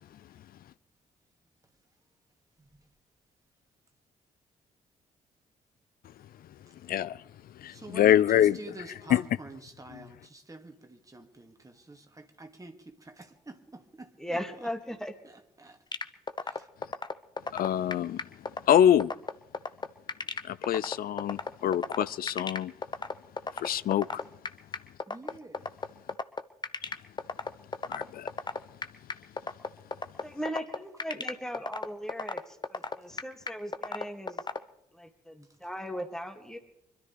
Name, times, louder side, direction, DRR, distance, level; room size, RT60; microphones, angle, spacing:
voice 1, 6.9-7.2 7.6-8.6 9.1-9.2 17.5-18.2 18.7-19.1 20.4-22.7 23.6-24.2 27.9-28.3, left 10 dB, 50° left, 0.6 m, -25 dB
voice 2, 7.7-14.7 15.2-15.8 16.4-16.7 25.1-25.7, right 2 dB, 20° right, 2.3 m, -47 dB
voice 3, 14.2-15.1 30.2-34.4 34.9-36.6, equal, 5° left, 2.4 m, -38 dB
sound 1, 15.9-34.6, left 4 dB, 25° left, 1.0 m, -33 dB
25.0 x 13.0 x 3.4 m
figure-of-eight pair, 40°, 19 cm